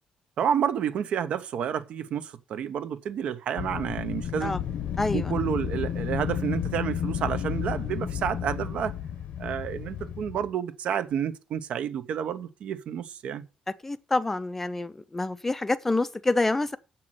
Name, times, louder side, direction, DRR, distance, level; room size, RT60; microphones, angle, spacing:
voice 1, 0.4-4.5 5.1-8.9 9.4-13.4, right 8 dB, 65° right, 0.9 m, -30 dB
Wind, 3.6-10.5, left 9 dB, 75° left, 0.9 m, -32 dB
voice 2, 5.0-5.3 13.8-16.8, left 2 dB, 15° left, 0.5 m, -27 dB
7.6 x 5.9 x 7.7 m
cardioid pair, 165°, 2 cm